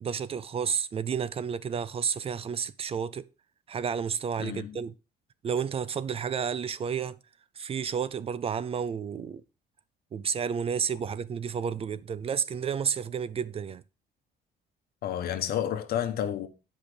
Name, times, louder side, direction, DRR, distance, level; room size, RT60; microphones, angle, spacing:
voice 1, 0.0-3.3 3.7-4.9 5.4-7.2 7.6-9.4 10.1-13.8, right 7 dB, 35° right, 0.5 m, -31 dB
voice 2, 4.4-4.8 15.0-16.5, left 10 dB, 65° left, 1.1 m, -30 dB
8.1 x 5.2 x 5.1 m
cardioid pair, 110°, 17 cm